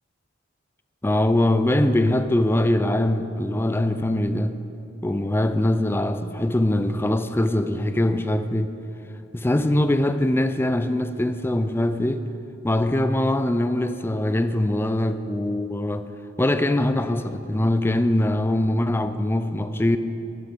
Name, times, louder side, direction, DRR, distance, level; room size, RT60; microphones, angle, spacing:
voice 1, 1.0-4.6 5.0-8.7 9.3-12.2 12.6-16.1 16.4-20.0, left 1 dB, 10° left, 0.4 m, -22 dB
13.5 x 12.0 x 5.1 m
head